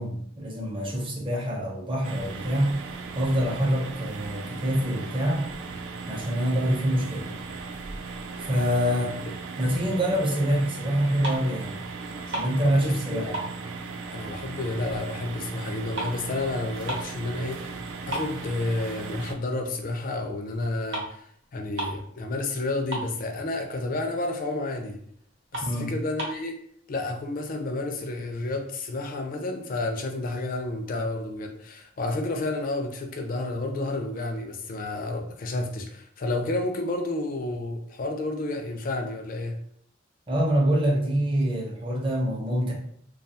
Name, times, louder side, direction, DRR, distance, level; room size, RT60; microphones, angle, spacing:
voice 1, 0.0-2.8 3.2-5.5 6.1-7.3 8.4-9.2 9.6-11.7 12.3-13.4 25.6-25.9 40.3-42.7, equal, 30° right, -1 dB, 0.6 m, -25 dB
sound 1, 2.0-19.3, right 4 dB, 85° right, 0.3 m, -37 dB
voice 2, 9.0-9.3 12.3-12.4 12.8-13.4 14.1-17.7 18.1-25.0 25.5-26.6 26.9-39.6, left 2 dB, 45° left, 4 dB, 0.4 m, -31 dB
sound 2, 11.2-11.6 11.9-13.0 13.3-14.8 15.2-17.2 17.6-17.7 18.1-19.2 19.6-19.8 20.6-20.7 20.9-21.2 21.4-21.5 21.7-22.1 22.4-22.5 22.7-23.5 24.0-24.1 24.5-24.6 25.0-25.1 25.5-26.5, right 1 dB, 65° right, 0.8 m, -35 dB
2.3 x 2.3 x 2.7 m, 0.65 s
head